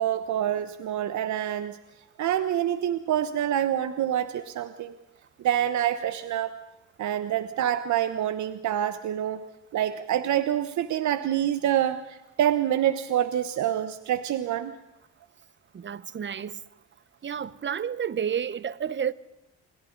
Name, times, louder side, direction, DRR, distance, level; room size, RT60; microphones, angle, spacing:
voice 1, 0.0-1.8 2.2-4.9 5.4-6.5 7.0-9.4 9.7-14.7, right 11 dB, 70° right, 1.1 m, -26 dB
voice 2, 15.7-16.6 17.2-19.1, right 8 dB, 40° right, 1.0 m, -30 dB
29.5 x 22.5 x 4.0 m
cardioid pair, 90°, 30 cm